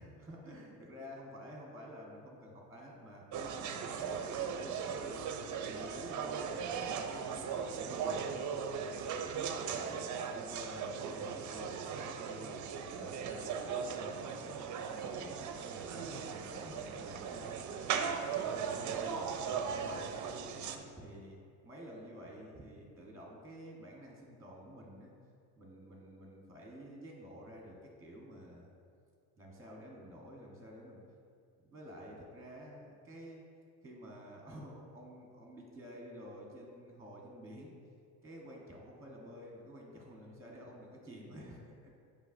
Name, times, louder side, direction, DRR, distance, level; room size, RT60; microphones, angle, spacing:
voice 1, 0.0-8.3 8.9-17.7 18.2-20.0 20.6-25.1 25.6-28.7 29.4-31.0 31.6-33.5 33.8-37.8 38.2-42.0, equal, 5° right, -2 dB, 1.1 m, -51 dB
sound 1, 3.3-20.8, right 6 dB, 40° right, 0.6 m, -38 dB
8.1 x 5.4 x 2.6 m, 2.3 s
supercardioid pair, 95°, 44 cm